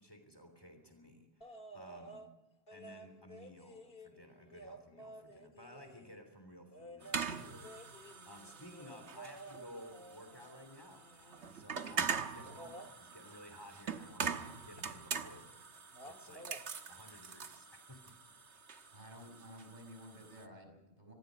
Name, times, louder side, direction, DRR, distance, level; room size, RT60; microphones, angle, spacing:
voice 1, 0.0-2.2 2.7-7.6 8.0-15.5 16.0-16.5 16.9-18.0 18.3-18.4, equal, 20° left, 5 dB, 3.3 m, -55 dB
sound 1, 1.4-2.3 2.7-6.2 6.7-11.6 12.4-12.9 14.8-14.9 15.2-15.7 15.9-16.6 18.0-18.1, right 1 dB, 60° left, 1.9 m, -53 dB
sound 2, 7.0-20.5, right 6 dB, 85° right, 1.5 m, -43 dB
voice 2, 18.9-21.1, equal, 45° right, 4 dB, 6.2 m, -53 dB
26.0 x 19.5 x 5.3 m, 0.96 s
omnidirectional pair, 1.1 m